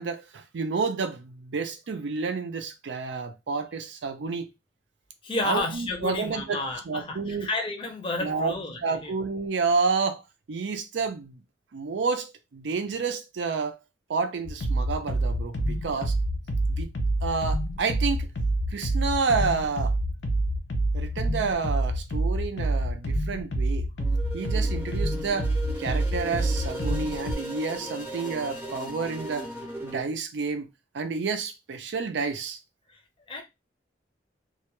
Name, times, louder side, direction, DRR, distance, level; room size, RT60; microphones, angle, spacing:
voice 1, 0.0-4.5 5.4-7.5 8.2-8.5 8.8-10.2 10.5-11.4 11.7-13.8 14.1-16.1 16.7-16.9 17.2-18.3 18.7-20.0 20.9-23.9 24.3-25.5 25.8-29.5 29.8-30.7 30.9-32.6, right 4 dB, 80° right, 0.5 m, -30 dB
voice 2, 5.2-9.1 15.9-16.0 33.3-33.4, left 2 dB, 30° left, 0.6 m, -31 dB
sound 1, 14.5-27.3, right 1 dB, 80° left, 0.6 m, -27 dB
sound 2, 24.0-30.0, equal, 15° right, 0.6 m, -37 dB
2.3 x 2.2 x 2.9 m
head